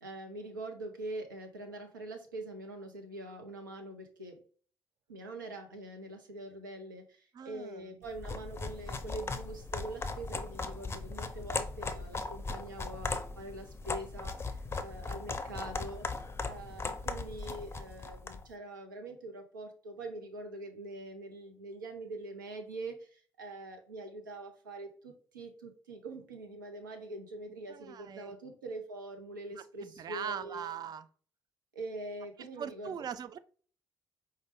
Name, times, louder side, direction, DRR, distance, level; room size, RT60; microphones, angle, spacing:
voice 1, 0.0-4.3 5.1-7.0 7.5-14.3 14.8-16.0 16.4-22.9 23.4-24.9 25.3-30.7 31.8-33.1, right 2 dB, 85° right, 4 dB, 0.6 m, -43 dB
voice 2, 7.3-7.9 27.7-28.4 29.5-31.1 32.4-33.4, right 8 dB, 40° right, 13 dB, 0.3 m, -41 dB
sound 1, 8.1-18.5, left 3 dB, 25° left, 0.5 m, -38 dB
4.9 x 2.2 x 3.5 m, 0.43 s
figure-of-eight pair, 45°, 10 cm